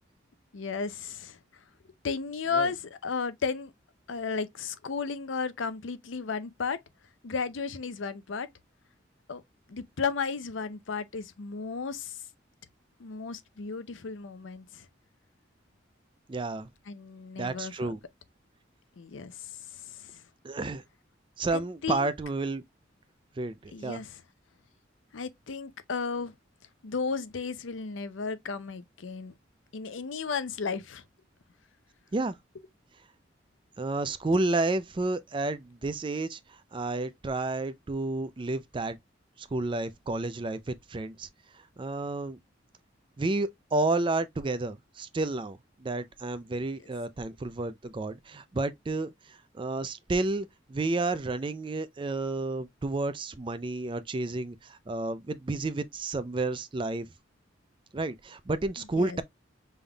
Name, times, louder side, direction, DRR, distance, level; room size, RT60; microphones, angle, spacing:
voice 1, 0.5-3.7 4.1-6.8 7.2-8.5 9.3-9.4 9.7-12.2 13.0-14.9 16.9-18.0 19.0-20.2 21.5-22.1 23.7-24.2 25.1-26.3 26.8-29.3 29.7-31.0 58.8-59.2, left 5 dB, 80° left, 0.6 m, -34 dB
voice 2, 16.3-16.7 17.4-18.0 20.4-20.8 21.4-22.6 23.4-24.0 32.1-32.3 33.8-36.4 36.7-39.0 39.4-41.3 41.8-42.4 43.2-49.1 49.5-57.1 57.9-59.2, right 2 dB, 25° right, 0.4 m, -31 dB
5.4 x 3.4 x 2.3 m
head